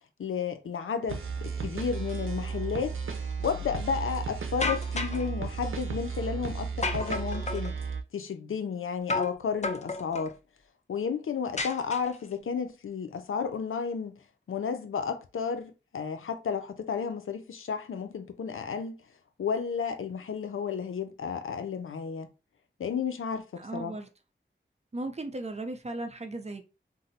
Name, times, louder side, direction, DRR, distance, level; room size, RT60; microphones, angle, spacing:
voice 1, 0.2-3.0 3.4-7.7 8.1-10.4 10.9-14.2 14.5-19.0 19.4-22.3 22.8-24.0, left 6 dB, 90° left, 0.5 m, -32 dB
sound 1, 1.1-8.0, right 5 dB, 85° right, 0.5 m, -34 dB
sound 2, 4.6-5.3 6.8-7.7 9.1-9.4 9.6-10.3 11.6-12.3, left 3 dB, 35° left, 0.5 m, -32 dB
voice 2, 23.6-24.1 24.9-26.6, right 2 dB, 35° right, 0.6 m, -36 dB
2.6 x 2.0 x 4.0 m
wide cardioid pair, 50°, 21 cm